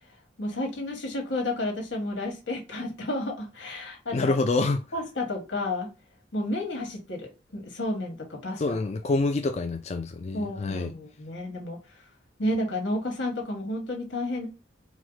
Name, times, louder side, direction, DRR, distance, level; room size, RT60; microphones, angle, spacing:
voice 1, 0.4-4.3 4.9-5.9 6.3-8.6 10.3-11.8 12.4-14.5, left 1 dB, 90° left, 1.6 m, -31 dB
voice 2, 4.1-4.8 8.6-10.9, left 3 dB, 35° left, 0.3 m, -26 dB
4.6 x 2.1 x 3.9 m
head